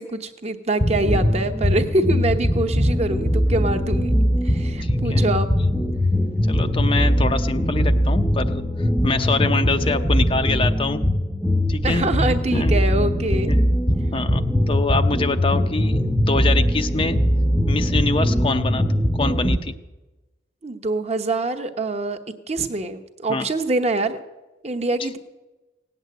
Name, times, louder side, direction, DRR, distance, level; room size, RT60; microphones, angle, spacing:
voice 1, 0.0-4.2 4.4-5.5 11.8-13.5 20.6-22.2 22.5-24.2 24.6-25.2, right 2 dB, 35° right, 7 dB, 1.0 m, -24 dB
sound 1, 0.8-19.6, equal, ahead, 0.8 m, -21 dB
voice 2, 4.8-5.2 6.5-11.0 11.7-12.0 12.5-12.8 13.5-13.6 14.1-17.2 17.7-18.8 19.1-19.7 23.3-23.5, left 3 dB, 30° left, 8 dB, 0.6 m, -25 dB
17.5 x 8.1 x 9.2 m, 1.1 s
head